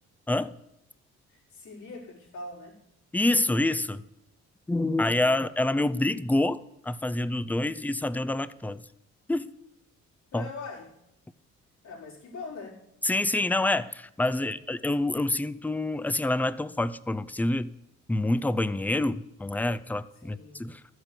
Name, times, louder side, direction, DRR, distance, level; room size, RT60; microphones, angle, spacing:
voice 1, 1.3-2.8 5.3-5.4 10.3-10.9 11.8-12.8 14.4-14.5 20.2-20.8, left 3 dB, 75° left, 4.5 m, -42 dB
voice 2, 3.1-4.0 4.7-6.6 6.8-8.8 9.3-9.5 10.3-10.5 13.0-17.7 18.1-20.8, left 2 dB, 5° left, 0.5 m, -27 dB
13.0 x 7.9 x 6.9 m
cardioid pair, 90°, 30 cm